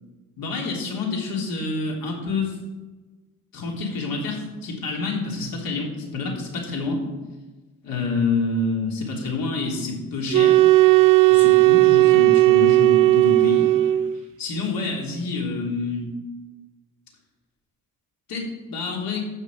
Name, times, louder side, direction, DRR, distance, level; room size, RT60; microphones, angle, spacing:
voice 1, 0.4-2.6 3.5-7.0 7.8-10.6 11.3-13.7 14.4-16.1 18.3-19.2, left 3 dB, 90° left, -1 dB, 3.5 m, -27 dB
sound 1, 10.3-14.2, right 17 dB, 70° right, 0.5 m, -15 dB
14.5 x 6.3 x 6.4 m, 1.2 s
cardioid pair, 175°, 34 cm